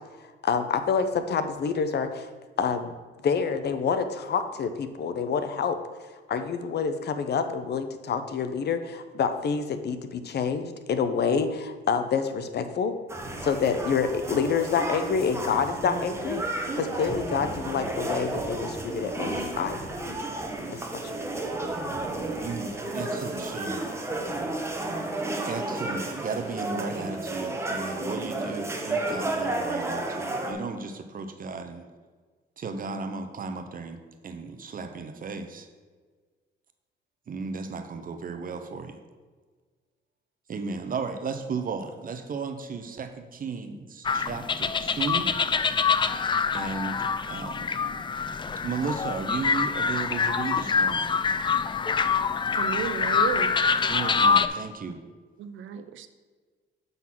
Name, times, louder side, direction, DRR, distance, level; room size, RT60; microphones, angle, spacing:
voice 1, 0.4-2.3 2.6-2.9 3.2-5.8 6.3-12.9 13.4-16.4 16.7-19.8 20.7-21.2, left 6 dB, 55° left, 9 dB, 0.7 m, -27 dB
sound 1, 13.1-30.5, right 2 dB, 15° right, 1.2 m, -32 dB
voice 2, 22.3-23.8 25.5-31.8 32.6-35.7 37.3-39.0 40.5-45.3 46.5-47.9 48.6-51.1 53.9-55.0, right 4 dB, 45° right, 8 dB, 0.8 m, -35 dB
sound 2, 44.0-54.5, left 5 dB, 25° left, 0.3 m, -25 dB
voice 3, 52.5-53.6 55.4-56.1, right 8 dB, 75° right, 10 dB, 0.6 m, -33 dB
7.3 x 4.0 x 6.0 m, 1.5 s
cardioid pair, 90°, 20 cm